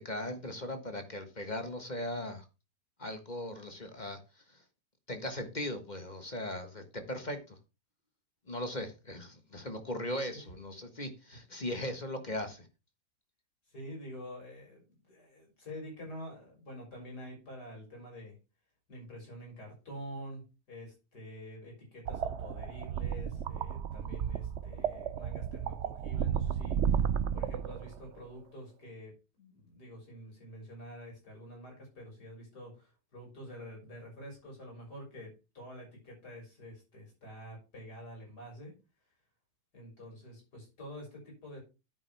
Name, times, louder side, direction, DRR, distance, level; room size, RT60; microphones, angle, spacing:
voice 1, 0.0-2.4 3.0-4.6 5.1-7.6 8.5-12.7, left 1 dB, 25° left, 7 dB, 1.4 m, -38 dB
voice 2, 13.7-18.4 18.9-27.1 27.3-38.8 39.7-41.6, equal, 65° left, 0 dB, 6.9 m, -47 dB
sound 1, 22.1-28.2, right 8 dB, 60° right, 0.7 m, -33 dB
10.5 x 8.8 x 3.4 m, 0.29 s
omnidirectional pair, 1.9 m